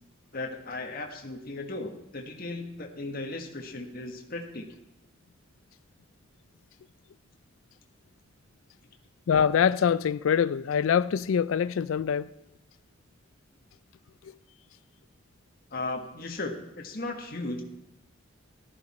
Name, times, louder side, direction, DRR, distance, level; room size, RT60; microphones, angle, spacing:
voice 1, 0.3-4.6 15.7-17.6, left 2 dB, 45° left, 1.5 m, -36 dB
voice 2, 9.3-12.3 14.2-14.3, left 7 dB, 75° left, 0.4 m, -24 dB
14.5 x 12.5 x 4.3 m
head